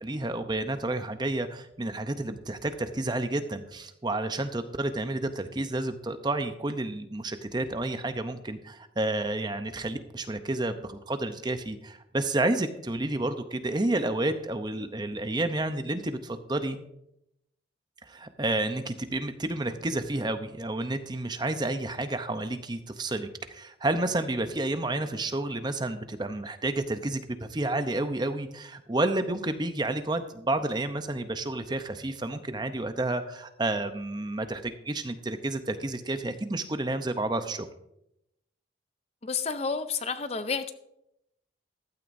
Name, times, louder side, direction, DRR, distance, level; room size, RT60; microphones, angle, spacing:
voice 1, 0.0-16.8 18.1-37.7, right 2 dB, 20° right, 9 dB, 0.6 m, -30 dB
voice 2, 39.2-40.7, left 5 dB, 35° left, 10 dB, 0.5 m, -30 dB
15.0 x 12.5 x 2.6 m, 0.81 s
head